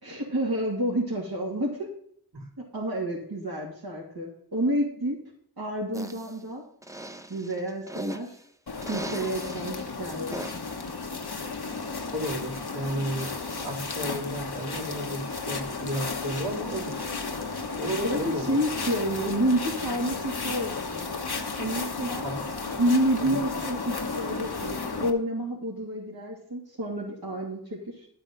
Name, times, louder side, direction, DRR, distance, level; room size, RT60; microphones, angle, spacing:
voice 1, 0.0-1.9 2.7-5.2 5.6-6.6 7.3-8.3 8.8-10.4 18.0-21.1 21.6-22.2 22.8-28.1, right 1 dB, 65° right, -4 dB, 2.6 m, -29 dB
sound 1, 5.9-6.3 6.8-8.4 8.8-9.7 10.3-10.8, right 1 dB, 10° right, 0.7 m, -37 dB
sound 2, 8.7-25.1, left 4 dB, 75° left, 1.2 m, -33 dB
voice 2, 12.1-17.0 17.8-18.6 22.2-22.4 23.2-23.4, right 1 dB, 85° right, -5 dB, 3.8 m, -33 dB
11.0 x 8.9 x 3.9 m, 0.65 s
wide cardioid pair, 55°, 39 cm